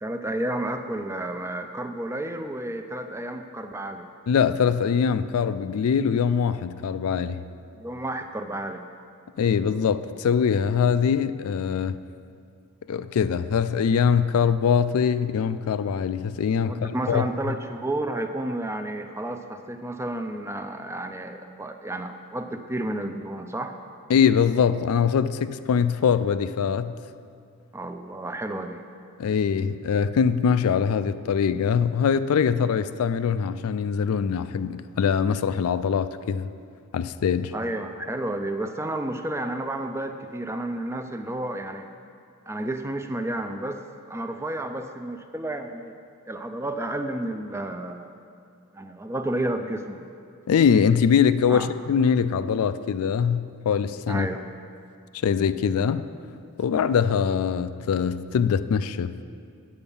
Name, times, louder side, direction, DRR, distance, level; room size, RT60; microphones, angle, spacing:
voice 1, 0.0-4.1 7.8-8.8 16.6-23.7 27.7-28.8 37.5-41.9 42.5-45.9 46.3-48.2 48.7-50.0 51.5-51.7 54.1-54.5, right 1 dB, 10° right, 0.4 m, -31 dB
voice 2, 4.3-7.4 9.4-12.0 12.9-17.3 24.1-27.0 29.2-36.5 36.9-37.5 50.5-54.3 55.2-56.0 56.6-59.2, left 7 dB, 75° left, 0.3 m, -23 dB
8.5 x 8.0 x 5.4 m
head